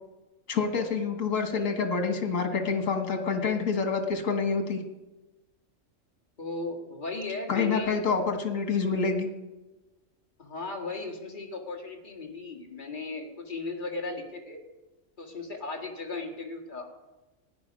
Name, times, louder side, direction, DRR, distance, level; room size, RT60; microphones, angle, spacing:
voice 1, 0.5-4.8 7.5-9.3, left 5 dB, 85° left, 6 dB, 1.9 m, -27 dB
voice 2, 6.4-8.0 10.4-14.6 15.2-16.9, left 3 dB, 40° left, 2 dB, 2.0 m, -36 dB
15.5 x 10.0 x 5.3 m, 1.1 s
omnidirectional pair, 1.3 m